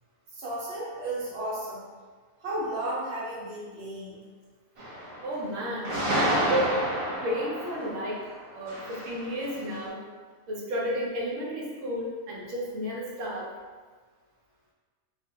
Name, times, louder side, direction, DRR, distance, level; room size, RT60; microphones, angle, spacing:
voice 1, 0.4-1.8 2.4-4.2, right 1 dB, 65° right, -8 dB, 1.2 m, -33 dB
sound 1, 4.8-5.6 5.8-9.9, right 1 dB, 45° right, 0.4 m, -30 dB
voice 2, 5.2-5.9 6.2-6.8 7.2-8.2 8.5-10.0 10.5-13.5, equal, 80° right, -4 dB, 1.0 m, -32 dB
2.4 x 2.4 x 2.8 m, 1.4 s
omnidirectional pair, 1.3 m